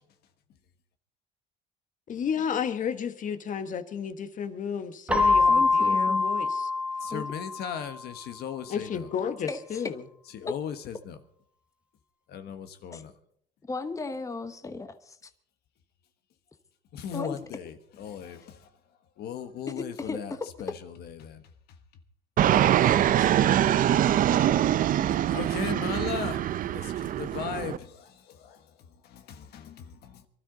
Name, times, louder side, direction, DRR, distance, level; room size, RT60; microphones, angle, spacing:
voice 1, 2.1-6.7 8.7-10.0, left 7 dB, 50° left, 1.3 m, -32 dB
Keyboard (musical), 5.1-7.8, left 3 dB, 5° right, 1.3 m, -24 dB
voice 2, 5.5-6.3 7.1-7.2 9.5-9.8 10.5-10.6 12.9-13.0 13.7-15.3 17.1-17.4 20.0-20.4, left 3 dB, 20° left, 1.0 m, -35 dB
voice 3, 7.0-9.1 10.3-11.2 12.3-13.1 16.9-18.7 19.2-21.4 22.4-23.7 25.3-26.5 26.7-29.6, left 8 dB, 70° left, 1.4 m, -38 dB
Fixed-wing aircraft airplane, 22.4-27.8, right 11 dB, 55° right, 0.6 m, -23 dB
23.5 x 12.5 x 4.0 m
cardioid pair, 110°, 17 cm